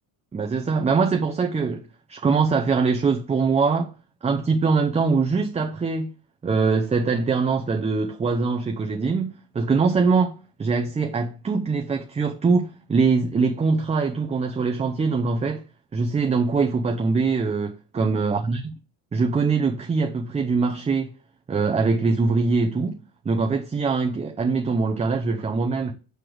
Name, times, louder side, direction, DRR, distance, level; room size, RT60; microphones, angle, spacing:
voice 1, 0.3-3.9 4.2-6.1 6.4-15.6 15.9-18.6 19.1-21.1 21.5-25.9, right 4 dB, 15° right, 0.6 m, -23 dB
7.7 x 3.4 x 6.1 m
cardioid pair, 135°, 39 cm